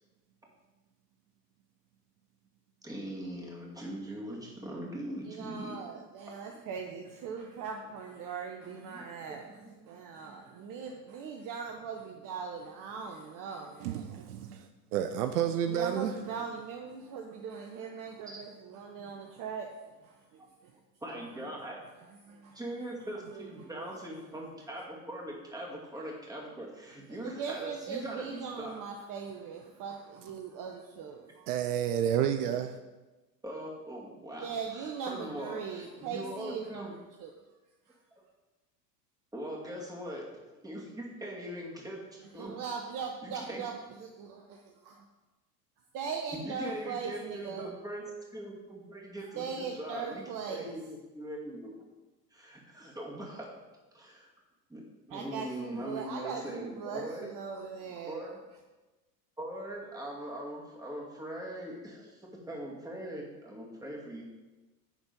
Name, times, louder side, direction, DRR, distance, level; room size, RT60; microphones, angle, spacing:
voice 1, 2.8-5.9 8.7-9.7 21.0-21.8 22.5-28.8 33.4-36.9 39.3-40.2 40.5-42.0 42.3-42.5 43.2-43.6 46.3-51.9 52.3-53.5 53.9-54.3 54.7-54.8 55.1-57.3 58.1-58.4 59.4-64.2, right 1 dB, 5° right, 2.4 m, -41 dB
voice 2, 5.2-9.6 9.9-14.2 15.7-20.8 22.2-22.6 23.3-24.1 27.2-31.5 34.4-37.3 37.9-38.0 42.3-43.7 44.0-45.0 45.9-47.7 49.3-50.7 55.1-58.3, right 6 dB, 40° right, 0.9 m, -40 dB
voice 3, 13.8-16.1 31.5-32.8, right 9 dB, 65° right, 0.7 m, -30 dB
10.5 x 4.4 x 5.3 m
hypercardioid pair, 90°, 49 cm